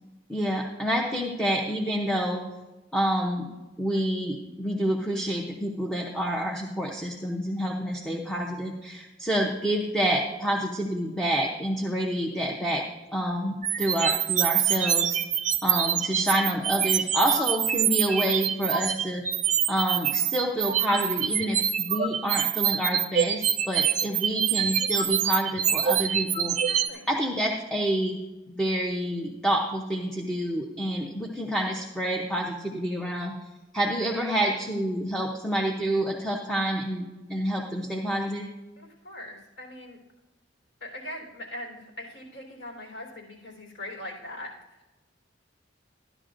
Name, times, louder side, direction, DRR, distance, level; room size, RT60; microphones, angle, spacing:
voice 1, 0.3-2.4 2.9-3.4 3.8-12.8 13.1-15.2 15.6-19.2 19.7-26.6 27.1-28.2 28.5-33.3 33.7-37.0 37.3-38.5, equal, 5° left, -1 dB, 0.7 m, -28 dB
sound 1, 13.6-26.9, right 9 dB, 40° right, 0.5 m, -25 dB
voice 2, 26.7-27.1 38.8-40.0 40.8-44.9, left 1 dB, 80° left, -1 dB, 3.9 m, -41 dB
13.5 x 11.0 x 2.6 m, 1.1 s
head